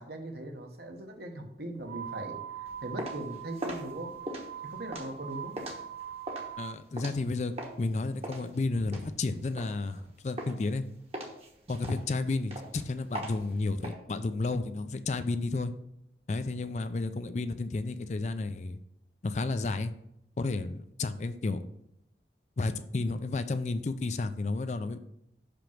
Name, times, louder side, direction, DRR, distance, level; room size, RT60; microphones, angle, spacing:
voice 1, 0.0-4.1 4.6-5.5, right 1 dB, 60° right, 3 dB, 1.1 m, -40 dB
sound 1, 1.8-6.8, right 8 dB, 80° right, 0.6 m, -42 dB
sound 2, 2.7-7.9 8.2-10.1 10.4-10.8 11.1-13.9, right 1 dB, 35° right, 1.1 m, -40 dB
voice 2, 6.6-10.8 11.7-15.7 16.3-18.8 19.2-19.9 20.4-21.6 22.6-25.0, left 3 dB, 40° left, 10 dB, 0.4 m, -32 dB
6.0 x 5.1 x 5.9 m, 0.81 s
head